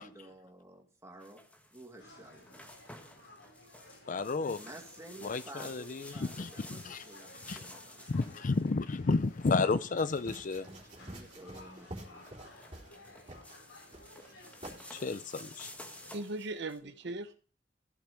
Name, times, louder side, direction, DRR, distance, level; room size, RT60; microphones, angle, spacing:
voice 1, 0.0-1.4 1.7-2.7 4.6-8.0 10.9-12.3 16.8-17.2, right 1 dB, 15° right, 2.3 m, -52 dB
sound 1, 1.2-16.8, left 1 dB, 10° left, 1.4 m, -53 dB
sound 2, 2.0-16.1, left 1 dB, 85° left, 5.8 m, -57 dB
voice 2, 4.1-4.6 5.2-7.0 7.5-7.6 8.1-10.7 14.9-15.7, left 3 dB, 45° left, 0.5 m, -32 dB
sound 3, 10.0-13.0 13.3-13.6 13.9-14.3 14.6-14.8, right 1 dB, 30° right, 3.9 m, -48 dB
voice 3, 14.8-15.2 16.1-17.3, right 2 dB, 65° right, 0.9 m, -39 dB
15.5 x 7.5 x 5.2 m
head